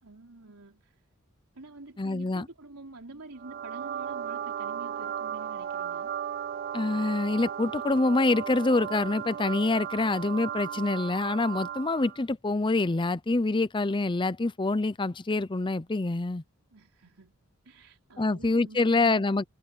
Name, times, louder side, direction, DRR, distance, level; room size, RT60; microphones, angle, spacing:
voice 1, 0.0-1.1 1.5-6.1 16.7-17.4 17.6-19.3, right 2 dB, 85° right, 3.6 m, -48 dB
voice 2, 2.0-2.5 6.7-16.4 18.2-19.4, left 2 dB, 20° left, 0.6 m, -26 dB
sound 1, 3.4-12.2, right 9 dB, 45° right, 0.4 m, -36 dB
head